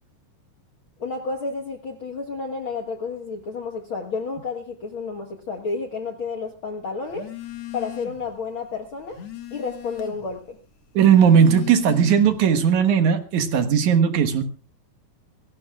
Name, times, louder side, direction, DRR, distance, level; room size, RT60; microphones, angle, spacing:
voice 1, 1.0-7.3 7.7-9.2 9.5-10.6, left 4 dB, 80° left, 1.1 m, -31 dB
Telephone, 7.1-8.3 8.7-10.4 11.0-12.5, left 12 dB, 50° left, 2.0 m, -37 dB
voice 2, 11.0-14.4, right 7 dB, 60° right, 2.2 m, -17 dB
25.0 x 18.0 x 2.4 m
omnidirectional pair, 4.7 m